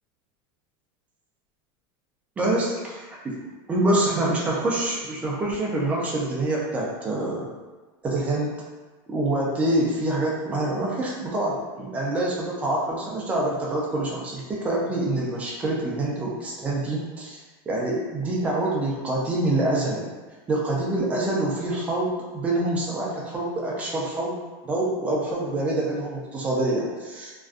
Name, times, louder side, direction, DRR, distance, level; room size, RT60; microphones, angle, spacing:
voice 1, 2.4-3.4 3.7-7.5 8.0-8.5 9.1-17.4 17.7-20.1 20.5-24.4 24.6-27.3, right 1 dB, 10° right, -3 dB, 0.3 m, -26 dB
2.5 x 2.2 x 2.3 m, 1.3 s
supercardioid pair, 175°, 12 cm